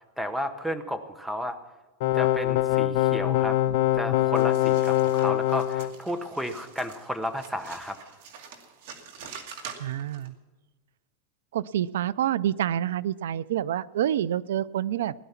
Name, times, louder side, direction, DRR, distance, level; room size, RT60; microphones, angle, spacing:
voice 1, 0.2-1.6 2.1-3.6 3.9-8.1, equal, ahead, 10 dB, 0.9 m, -33 dB
sound 1, 2.0-5.9, left 14 dB, 60° left, 0.6 m, -23 dB
sound 2, 4.4-10.3, right 6 dB, 65° right, 2.2 m, -45 dB
voice 2, 9.8-10.3 11.5-15.1, right 11 dB, 90° right, 20 dB, 0.4 m, -27 dB
17.5 x 11.0 x 5.8 m, 1.2 s
supercardioid pair, 160°, 0 cm